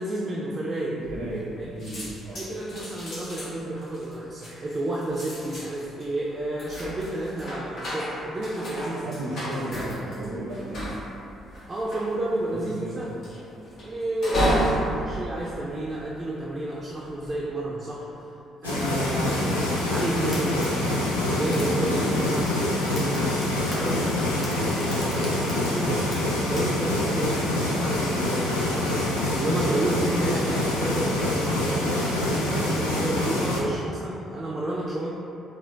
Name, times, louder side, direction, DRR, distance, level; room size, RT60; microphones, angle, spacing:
voice 1, 0.0-1.0 1.6-1.9 2.3-9.2 11.7-13.1 13.8-18.3 18.6-26.2 26.5-29.1 29.4-35.1, right 1 dB, 30° right, -6 dB, 0.4 m, -31 dB
sound 1, 1.0-1.5 1.8-16.4 16.9-17.3, equal, 60° left, 0.9 m, -32 dB
voice 2, 1.1-1.4 1.7-2.4 9.0-10.9 12.5-13.0, right 1 dB, 85° right, -9 dB, 0.6 m, -34 dB
sound 2, 18.6-33.6, left 1 dB, 90° left, 0.3 m, -26 dB
Fire, 19.7-28.8, equal, 30° left, 1.1 m, -44 dB
3.7 x 2.1 x 2.2 m, 2.7 s
hypercardioid pair, 45°, 0 cm